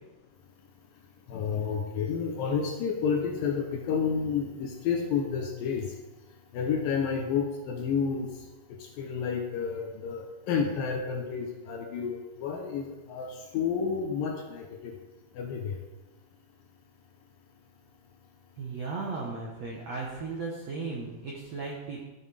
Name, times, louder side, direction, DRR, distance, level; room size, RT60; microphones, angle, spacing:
voice 1, 1.3-5.9 6.5-8.3 9.0-14.9 15.4-15.8, left 6 dB, 75° left, 2 dB, 2.2 m, -30 dB
voice 2, 18.5-22.0, right 4 dB, 75° right, -2 dB, 1.5 m, -36 dB
13.0 x 7.2 x 3.4 m, 1.1 s
omnidirectional pair, 4.7 m